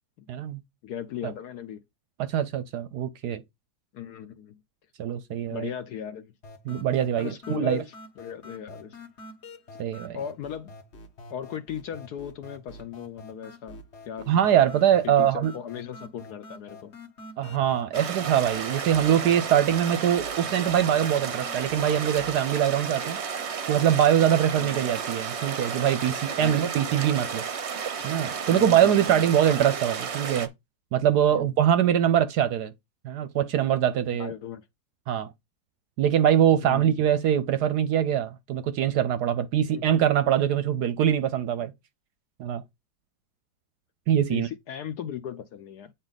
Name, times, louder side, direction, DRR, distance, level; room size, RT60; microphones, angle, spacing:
voice 1, 0.3-0.6 2.2-3.4 5.0-5.7 6.7-7.8 9.8-10.2 14.3-15.5 17.4-23.2 23.7-27.4 28.0-30.5 30.9-32.7 33.0-34.3 35.1-35.3 36.0-41.7 42.4-42.6 44.1-44.5, right 10 dB, 70° right, 1.0 m, -23 dB
voice 2, 0.8-1.8 3.9-4.6 5.5-6.3 7.2-9.0 10.1-10.7 11.3-13.8 14.1-14.3 15.0-16.9 24.6-24.7 26.4-26.6 28.5-29.3 31.3-31.5 34.2-34.6 36.6-36.9 39.7-39.8 44.3-45.9, left 9 dB, 65° left, 1.0 m, -37 dB
sound 1, 6.4-22.4, left 2 dB, 45° left, 1.0 m, -47 dB
sound 2, 17.9-30.5, right 6 dB, 55° right, 0.8 m, -32 dB
8.8 x 4.1 x 4.0 m
omnidirectional pair, 2.1 m